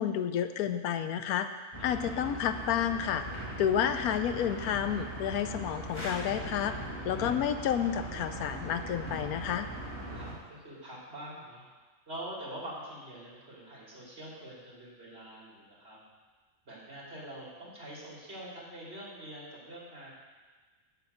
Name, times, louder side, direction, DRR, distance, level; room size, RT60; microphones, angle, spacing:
voice 1, 0.0-3.2 3.6-9.7, left 9 dB, 85° left, 9 dB, 1.1 m, -30 dB
sound 1, 1.7-10.3, right 1 dB, 20° left, 1.7 m, -40 dB
voice 2, 1.8-2.1 10.1-11.6 12.1-16.0 16.6-20.1, right 1 dB, 45° right, -5 dB, 3.1 m, -45 dB
7.9 x 6.9 x 8.0 m, 1.4 s
omnidirectional pair, 1.5 m